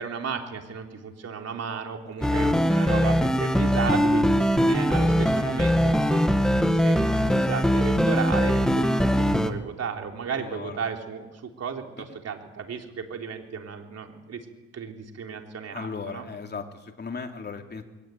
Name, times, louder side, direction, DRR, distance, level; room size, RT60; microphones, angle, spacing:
voice 1, 0.0-6.4 6.7-14.4 14.7-16.2, right 6 dB, 55° right, 3 dB, 3.5 m, -34 dB
voice 2, 2.2-3.2 10.4-10.8 12.1-12.2 15.6-17.8, left 5 dB, 35° left, 3 dB, 3.2 m, -38 dB
sound 1, 2.2-9.5, equal, ahead, 1.9 m, -21 dB
22.0 x 18.5 x 9.2 m, 1.1 s
cardioid pair, 90°, 30 cm